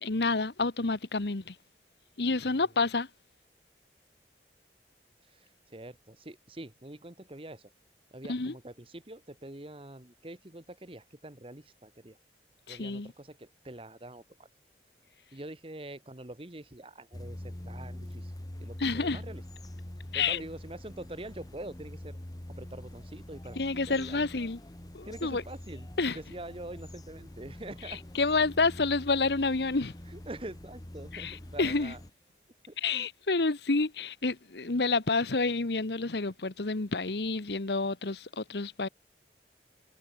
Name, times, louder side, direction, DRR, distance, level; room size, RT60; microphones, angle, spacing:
voice 1, 0.0-1.5 2.2-3.1 8.3-8.5 12.7-13.1 18.8-19.2 20.1-20.4 23.6-24.6 24.9-25.4 26.0-26.2 27.9-29.9 31.1-31.9 32.8-38.9, left 3 dB, 75° left, 1.1 m, -29 dB
voice 2, 5.2-7.7 8.1-12.2 12.7-14.5 15.3-18.3 18.6-19.4 20.1-22.2 22.5-24.2 25.0-28.0 30.1-32.0 32.7-33.1, right 1 dB, 30° right, 1.5 m, -45 dB
sound 1, 17.1-32.1, left 1 dB, 20° left, 1.0 m, -45 dB
head